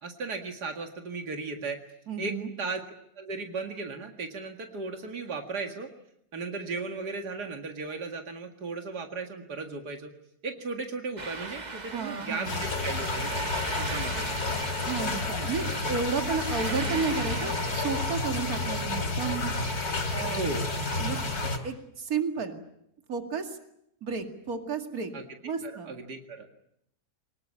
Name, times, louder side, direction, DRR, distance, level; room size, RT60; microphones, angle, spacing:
voice 1, 0.0-1.8 2.2-2.8 3.2-5.9 6.3-10.1 10.4-13.4 13.8-14.3 20.4-20.7 25.1-25.2 25.6-26.5, right 3 dB, 85° right, 5 dB, 2.5 m, -36 dB
voice 2, 2.1-2.5 11.9-12.6 13.9-14.0 14.8-19.5 20.1-20.5 21.0-21.2 21.6-22.6 23.1-23.5 24.0-25.1 25.4-25.9, right 5 dB, 65° right, 5 dB, 2.7 m, -32 dB
sound 1, 11.2-18.2, right 3 dB, 30° right, 1.4 m, -39 dB
sound 2, 12.4-21.6, left 3 dB, 70° left, 3.7 m, -30 dB
24.0 x 20.5 x 9.9 m, 0.75 s
omnidirectional pair, 1.7 m